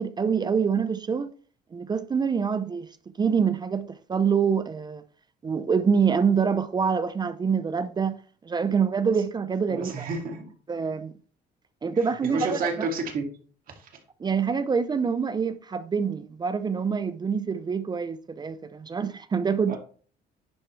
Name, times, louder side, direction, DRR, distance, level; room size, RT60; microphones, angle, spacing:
voice 1, 0.0-1.3 1.7-5.0 5.4-10.1 10.7-11.1 11.8-12.9 14.2-19.8, right 6 dB, 25° right, 0.5 m, -26 dB
voice 2, 9.7-10.5 12.2-13.3 13.8-13.9 19.7-19.8, right 3 dB, 55° right, 2.2 m, -30 dB
10.5 x 4.5 x 3.2 m
cardioid pair, 110°, 17 cm